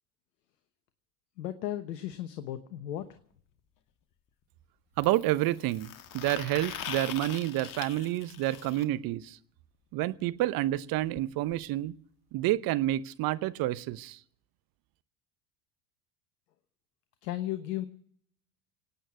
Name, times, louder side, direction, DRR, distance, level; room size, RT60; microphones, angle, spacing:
voice 1, 1.4-3.0 17.2-17.8, left 13 dB, 70° left, 10 dB, 1.1 m, -35 dB
sound 1, 3.0-3.1 5.0-8.8 10.7-10.8 11.1-11.2 11.5-11.6 12.6-12.7, left 9 dB, 40° left, 1.5 m, -42 dB
voice 2, 5.0-9.4 9.9-11.9 12.3-14.2, right 15 dB, 45° right, 15 dB, 0.9 m, -29 dB
25.0 x 8.9 x 6.1 m, 0.64 s
hypercardioid pair, 80°, 50 cm